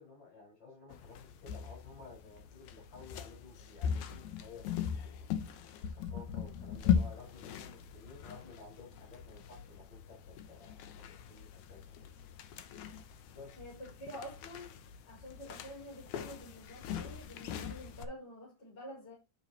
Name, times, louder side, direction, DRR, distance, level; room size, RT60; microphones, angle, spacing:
voice 1, 0.0-5.2 5.8-11.8 13.3-13.6, left 4 dB, 50° left, 6.1 m, -54 dB
sound 1, 0.9-18.1, left 8 dB, 70° left, 2.1 m, -39 dB
voice 2, 13.6-14.7 15.0-19.2, equal, 30° left, 5.8 m, -48 dB
9.0 x 7.4 x 2.9 m
omnidirectional pair, 3.9 m